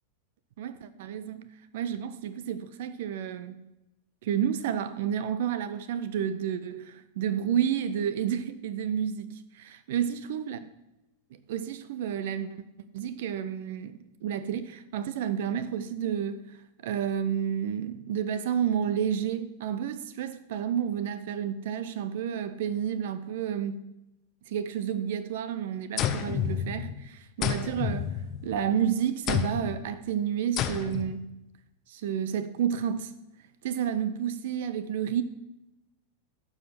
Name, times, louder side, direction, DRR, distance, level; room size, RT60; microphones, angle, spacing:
voice 1, 0.6-1.4 1.7-3.7 4.2-10.6 11.5-12.6 12.9-23.9 24.5-28.2 28.4-31.4 31.9-33.2 33.6-35.2, right 9 dB, 55° right, 0.5 m, -30 dB
sound 1, 26.0-27.0 27.4-28.7 29.3-29.8 30.6-31.2, left 9 dB, 35° left, 0.7 m, -30 dB
12.0 x 4.8 x 7.7 m
figure-of-eight pair, 90°, 0 cm